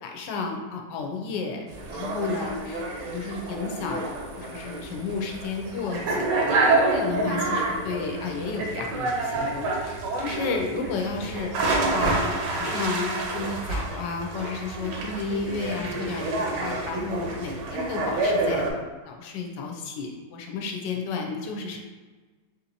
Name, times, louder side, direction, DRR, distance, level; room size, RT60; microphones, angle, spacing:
voice 1, 0.0-1.6 1.9-4.1 4.4-6.5 6.9-11.5 11.9-18.7 19.1-21.8, left 4 dB, 85° left, 2 dB, 1.3 m, -32 dB
sound 1, 1.7-18.7, right 2 dB, 80° right, 1.3 m, -28 dB
4.5 x 2.8 x 2.6 m, 1.3 s
omnidirectional pair, 1.9 m